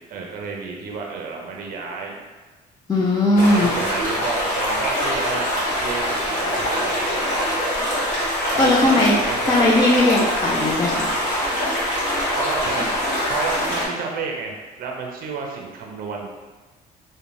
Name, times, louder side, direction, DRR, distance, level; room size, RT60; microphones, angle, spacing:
voice 1, 0.1-2.3 3.4-7.6 8.5-9.6 12.4-13.0 13.3-16.3, right 5 dB, 60° right, 0 dB, 0.5 m, -31 dB
voice 2, 2.9-3.7 8.2-9.1 9.5-11.1, left 1 dB, 20° left, -4 dB, 0.4 m, -18 dB
sound 1, 3.4-13.9, equal, 45° left, 1.1 m, -24 dB
3.0 x 2.2 x 2.6 m, 1.3 s
cardioid pair, 110°, 17 cm